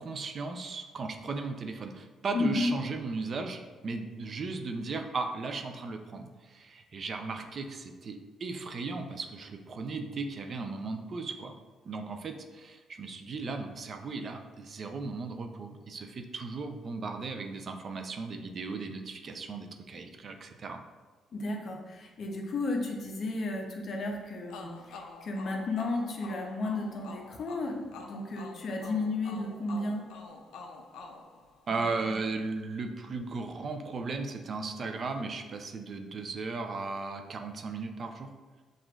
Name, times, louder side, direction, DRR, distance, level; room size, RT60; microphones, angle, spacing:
voice 1, 0.0-11.5 11.8-20.8 31.7-38.3, right 4 dB, 50° right, 5 dB, 0.4 m, -36 dB
voice 2, 2.3-2.7 21.3-30.0 32.0-32.1, left 2 dB, 50° left, 1 dB, 0.7 m, -33 dB
sound 1, 24.5-32.1, left 3 dB, 90° left, 0.4 m, -47 dB
6.1 x 2.5 x 2.3 m, 1.3 s
cardioid pair, 90°, 0 cm